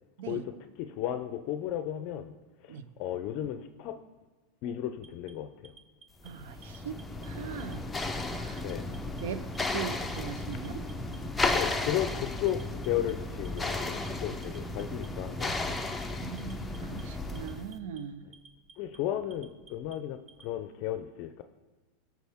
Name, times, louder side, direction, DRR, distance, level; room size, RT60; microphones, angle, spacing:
voice 1, 0.3-2.3 2.6-4.0 4.6-5.7 8.6-8.9 11.5-15.8 18.8-21.4, left 11 dB, 45° left, 9 dB, 0.5 m, -34 dB
Alarm, 5.0-6.3 6.6-7.3 7.6-8.2 8.6-9.2 9.5-10.2 10.5-11.2 11.5-12.1 12.5-13.1 13.5-14.1 14.4-15.1 15.4-16.0 16.4-17.0 17.4-18.0 18.3-19.0 19.3-20.5, right 4 dB, 35° right, 0.9 m, -55 dB
sound 1, 6.2-17.7, left 2 dB, 10° left, 0.7 m, -34 dB
voice 2, 6.2-7.8 8.3-8.6 9.2-10.8 16.2-18.3, right 7 dB, 80° right, 12 dB, 0.7 m, -40 dB
16.0 x 6.1 x 3.6 m, 1.2 s
supercardioid pair, 150°, 0 cm